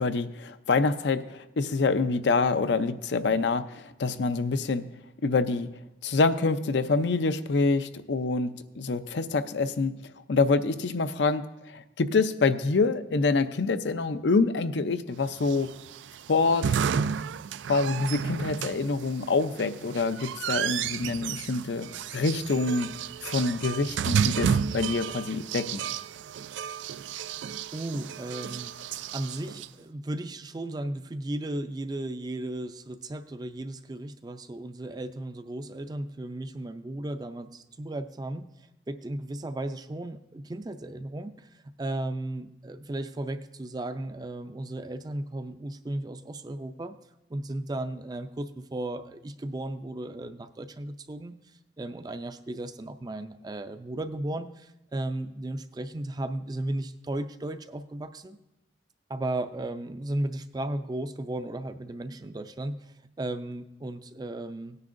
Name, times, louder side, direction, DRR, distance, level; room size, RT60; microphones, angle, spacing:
voice 1, 0.0-4.9 5.2-5.7 6.0-10.0 10.3-15.7 16.3-16.7 17.7-22.9 23.2-25.8, left 3 dB, 75° left, 11 dB, 0.5 m, -26 dB
sound 1, 15.4-29.7, right 7 dB, 90° right, 0.3 m, -32 dB
voice 2, 27.7-38.5 38.9-41.5 41.8-47.0 47.3-51.4 51.8-58.4 59.1-62.7 63.2-64.8, right 1 dB, 20° right, 10 dB, 0.4 m, -35 dB
17.5 x 9.6 x 2.6 m, 0.91 s
head